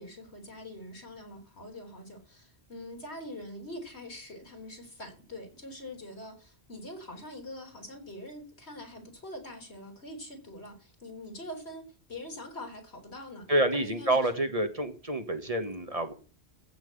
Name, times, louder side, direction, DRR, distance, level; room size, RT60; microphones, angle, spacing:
voice 1, 0.0-13.5 13.7-14.3, left 1 dB, 80° left, 4.2 m, -44 dB
voice 2, 13.5-16.1, right 1 dB, 35° right, 1.6 m, -28 dB
15.0 x 5.9 x 8.3 m
omnidirectional pair, 1.1 m